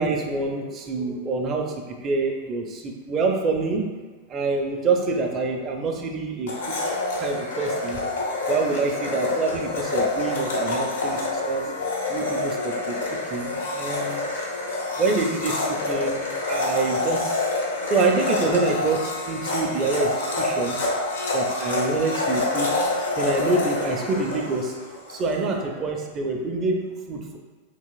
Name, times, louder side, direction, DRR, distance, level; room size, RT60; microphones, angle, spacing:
voice 1, 0.0-1.7 2.0-3.9 4.3-6.8 7.2-8.0 8.5-11.8 12.0-12.9 13.3-14.2 15.0-17.5 17.9-20.8 21.3-22.8 23.2-27.4, right 3 dB, 30° right, 2 dB, 0.4 m, -26 dB
Domestic sounds home sounds, 6.5-25.3, left 2 dB, 65° left, 0.6 m, -27 dB
3.3 x 2.8 x 2.3 m, 1.4 s
figure-of-eight pair, 90°, 0 cm